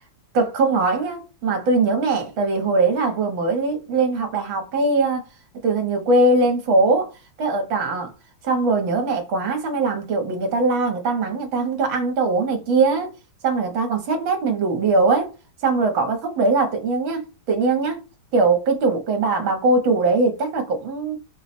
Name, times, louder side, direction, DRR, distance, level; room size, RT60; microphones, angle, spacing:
voice 1, 0.3-5.3 5.6-7.1 7.4-8.1 8.4-13.1 13.4-15.3 15.6-18.0 18.3-21.2, right 3 dB, 65° right, 1.8 m, -21 dB
4.8 x 2.3 x 4.1 m
omnidirectional pair, 2.4 m